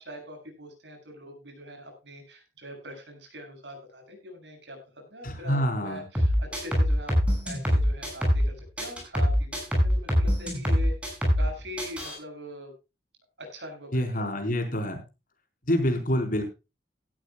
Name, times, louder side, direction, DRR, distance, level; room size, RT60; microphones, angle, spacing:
voice 1, 0.0-4.8 5.1-7.1 7.4-9.6 9.8-12.7 13.4-14.2, equal, 80° right, 5 dB, 7.3 m, -42 dB
voice 2, 5.2-6.0 13.9-15.0 15.7-16.4, equal, 50° left, 4 dB, 4.4 m, -26 dB
sound 1, 6.1-8.5 8.8-11.5 11.8-12.1, equal, 5° right, 6.8 m, -24 dB
17.5 x 13.0 x 2.3 m, 0.28 s
head